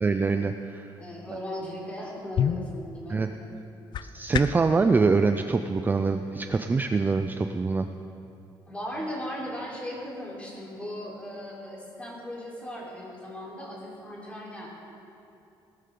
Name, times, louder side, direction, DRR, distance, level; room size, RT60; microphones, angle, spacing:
voice 1, 0.0-0.9 3.1-3.3 4.0-7.9, right 4 dB, 20° right, 8 dB, 0.4 m, -24 dB
voice 2, 1.0-3.5 8.7-14.7, equal, 15° left, -5 dB, 3.9 m, -37 dB
sound 1, 1.9-4.8, left 8 dB, 55° left, 0.5 m, -31 dB
19.0 x 12.5 x 3.8 m, 2.7 s
cardioid pair, 125°, 9 cm